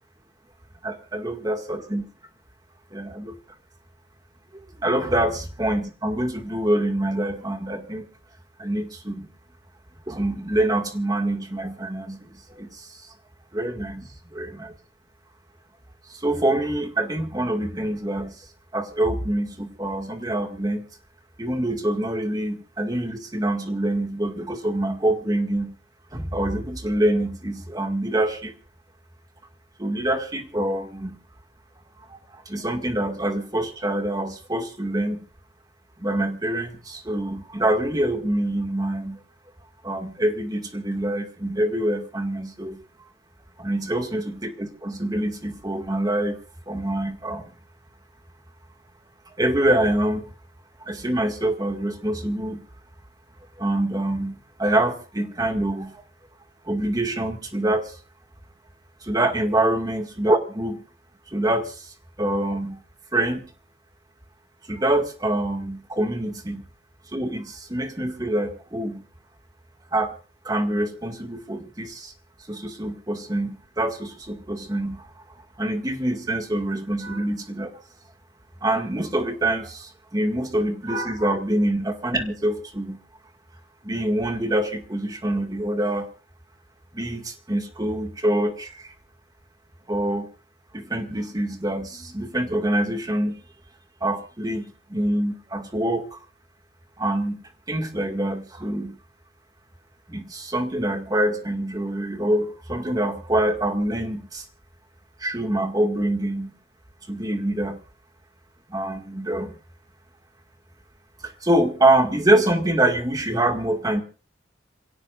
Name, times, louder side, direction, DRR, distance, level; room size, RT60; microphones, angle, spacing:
voice 1, 0.8-2.0 2.9-3.4 4.8-8.1 8.6-9.3 10.1-13.0 13.5-14.7 16.1-18.5 18.7-20.8 21.4-25.8 26.1-28.5 29.8-31.2 32.1-35.3 36.0-39.2 39.8-42.8 43.6-46.4 46.7-47.5 49.3-50.3 50.8-52.6 53.6-56.0 56.7-57.9 59.0-60.8 61.3-62.8 63.1-63.5 64.7-66.7 67.1-69.0 69.9-70.1 70.5-72.1 72.5-75.1 75.6-77.7 78.6-83.0 83.8-86.1 86.9-88.9 89.9-90.3 90.7-93.3 94.0-96.2 97.0-99.0 100.1-104.4 105.2-106.5 107.1-107.8 108.7-109.5 111.2-114.0, right 1 dB, 20° right, 5 dB, 1.9 m, -25 dB
27.5 x 17.0 x 2.5 m, 0.36 s
head